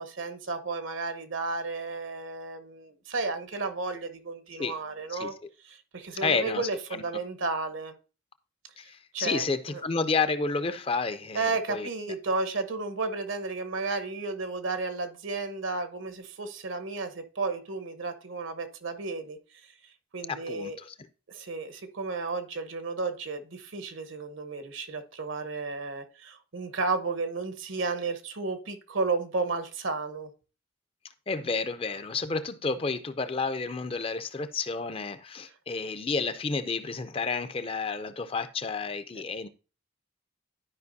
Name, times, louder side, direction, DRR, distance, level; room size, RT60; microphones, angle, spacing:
voice 1, 0.0-5.3 5.6-7.9 9.1-9.8 11.3-19.4 20.1-20.8 21.3-30.3, right 3 dB, 75° right, 1.0 m, -33 dB
voice 2, 6.2-6.7 8.8-11.9 20.3-20.9 31.3-39.5, left 4 dB, 25° left, 0.4 m, -30 dB
12.0 x 5.1 x 2.7 m
head